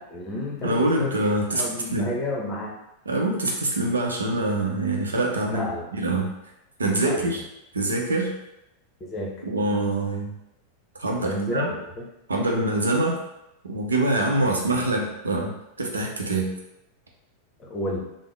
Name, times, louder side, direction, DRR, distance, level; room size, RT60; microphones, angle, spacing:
voice 1, 0.0-1.2 1.5-2.7 5.5-5.8 7.0-7.3 9.0-9.4 11.2-12.1 14.5-14.8 17.6-18.0, left 1 dB, 25° left, -2 dB, 0.8 m, -31 dB
voice 2, 0.6-1.6 1.9-2.1 3.1-5.7 5.9-6.3 6.8-7.4 7.7-8.3 9.4-10.3 10.9-11.7 12.3-13.2 13.6-16.6, right 2 dB, 75° right, 0 dB, 0.6 m, -24 dB
3.4 x 2.1 x 3.3 m, 0.87 s
figure-of-eight pair, 90°, 0 cm